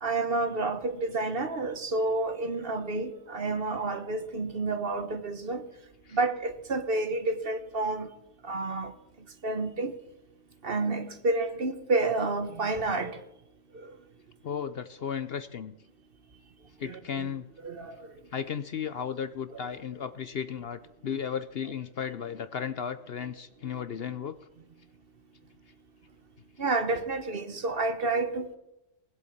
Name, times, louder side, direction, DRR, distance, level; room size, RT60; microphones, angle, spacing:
voice 1, 0.0-5.6 6.1-8.1 8.4-8.9 9.4-9.9 10.6-13.2 13.7-13.9 16.8-17.3 17.6-18.0 26.6-28.6, right 3 dB, 45° right, 1.3 m, -29 dB
voice 2, 14.4-15.7 16.8-17.5 18.3-24.3, left 7 dB, 55° left, 0.8 m, -35 dB
20.0 x 8.0 x 7.3 m
omnidirectional pair, 1.4 m